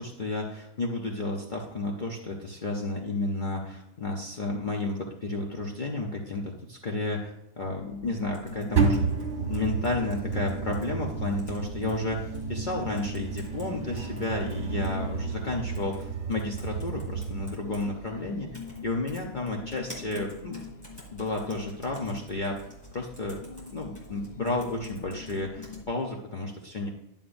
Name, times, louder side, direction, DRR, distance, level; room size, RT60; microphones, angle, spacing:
voice 1, 0.0-9.1 9.5-18.5 18.8-20.6 21.1-22.6 22.9-23.4 23.7-26.9, left 2 dB, 40° left, -1 dB, 0.9 m, -32 dB
sound 1, 7.6-25.9, left 3 dB, 80° left, 0.4 m, -45 dB
sound 2, 8.3-10.8 11.3-11.9 12.3-12.4 13.0-13.7 14.0-15.0 15.7-16.0 16.3-17.8 18.5-18.8 19.1-25.8, left 1 dB, 20° left, 2.7 m, -49 dB
sound 3, 8.7-17.5, right 5 dB, 60° right, 1.4 m, -31 dB
11.5 x 6.9 x 2.6 m, 0.91 s
omnidirectional pair, 1.4 m